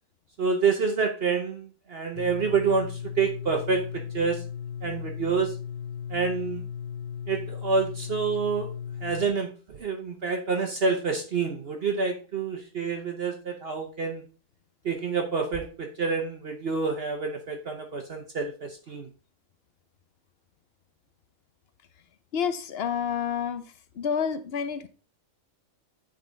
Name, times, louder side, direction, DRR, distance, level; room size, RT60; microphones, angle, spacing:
voice 1, 0.4-3.9 4.1-4.4 4.8-5.5 6.1-6.6 7.3-8.7 9.0-14.2 14.8-19.1, right 5 dB, 50° right, 3 dB, 1.0 m, -28 dB
sound 1, 2.2-9.3, left 7 dB, 90° left, 1.1 m, -36 dB
voice 2, 22.3-23.6 23.9-24.9, left 7 dB, 55° left, 10 dB, 0.8 m, -29 dB
8.7 x 3.9 x 3.9 m, 0.36 s
omnidirectional pair, 1.4 m